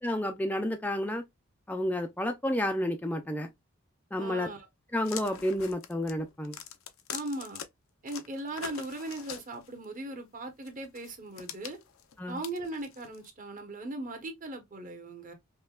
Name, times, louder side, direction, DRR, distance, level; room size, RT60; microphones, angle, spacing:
voice 1, 0.0-1.3 1.7-3.5 4.1-4.5 4.9-6.6 12.2-12.4, left 1 dB, 10° left, 0.3 m, -30 dB
voice 2, 4.2-4.7 7.1-7.6 8.0-11.8 12.3-15.3, right 2 dB, 40° right, 1.0 m, -38 dB
sound 1, 5.0-7.7 8.1-9.9 10.6-13.3, left 8 dB, 80° left, 0.6 m, -43 dB
5.2 x 2.2 x 2.3 m
head